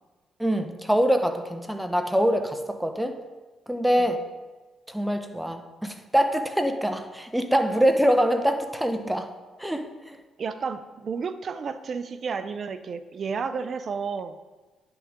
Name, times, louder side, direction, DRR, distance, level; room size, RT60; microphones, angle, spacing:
voice 1, 0.4-3.2 3.7-4.2 4.9-9.3 9.6-10.2, equal, 5° right, 7 dB, 0.9 m, -24 dB
voice 2, 10.4-14.4, right 5 dB, 50° right, 11 dB, 0.6 m, -32 dB
10.5 x 6.0 x 3.7 m, 1.3 s
cardioid pair, 70°, 0 cm